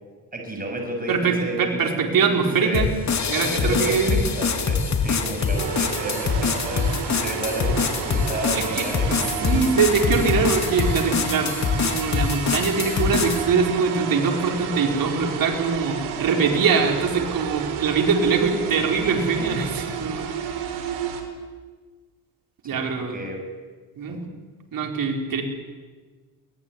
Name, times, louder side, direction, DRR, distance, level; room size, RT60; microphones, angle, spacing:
voice 1, 0.3-2.9 3.4-9.5 22.7-23.4 24.1-24.2, right 1 dB, 25° right, 2 dB, 7.4 m, -32 dB
voice 2, 1.1-2.9 3.3-4.2 8.5-8.8 9.4-11.5 11.8-20.2 22.6-23.2 24.0-24.2 24.7-25.4, right 5 dB, 60° right, 1 dB, 5.0 m, -23 dB
sound 1, 2.4-16.1, left 1 dB, 20° left, 7.9 m, -47 dB
sound 2, 2.7-13.5, left 5 dB, 45° left, 3.1 m, -24 dB
sound 3, 5.6-21.2, right 7 dB, 90° right, 4.2 m, -31 dB
23.0 x 20.0 x 9.8 m, 1.4 s
cardioid pair, 100°, 38 cm